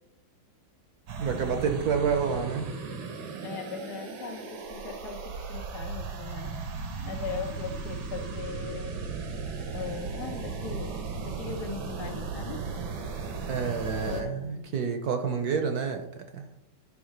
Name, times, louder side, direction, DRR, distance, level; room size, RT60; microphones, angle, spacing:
sound 1, 1.1-14.2, right 5 dB, 85° right, 1.9 m, -36 dB
voice 1, 1.2-2.7 13.5-16.5, right 6 dB, 60° right, 6 dB, 1.1 m, -29 dB
voice 2, 3.4-6.5 7.0-9.2 9.7-12.8 14.0-14.9, left 6 dB, 65° left, 5 dB, 1.2 m, -39 dB
11.0 x 3.6 x 5.1 m, 0.87 s
omnidirectional pair, 2.0 m